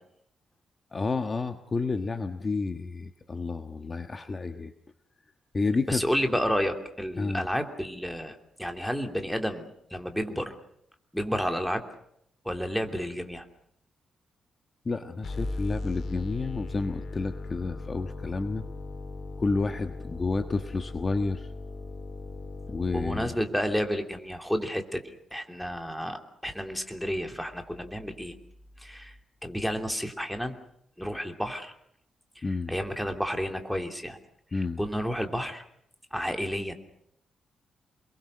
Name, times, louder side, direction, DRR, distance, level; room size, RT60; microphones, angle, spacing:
voice 1, 0.9-4.7 5.5-6.0 7.2-7.5 14.8-18.7 19.4-21.5 22.7-23.4 32.4-32.7 34.5-34.8, left 3 dB, 30° left, 7 dB, 1.4 m, -30 dB
voice 2, 5.9-10.6 11.1-11.8 12.4-13.4 22.9-25.0 25.3-28.3 28.8-29.1 29.4-30.6 31.0-31.7 32.7-34.2 34.5-35.6 36.1-36.7, equal, ahead, 5 dB, 3.0 m, -31 dB
sound 1, 15.2-23.2, left 2 dB, 60° left, 4.5 m, -38 dB
28.5 x 22.5 x 6.5 m, 0.72 s
cardioid pair, 130°, 0 cm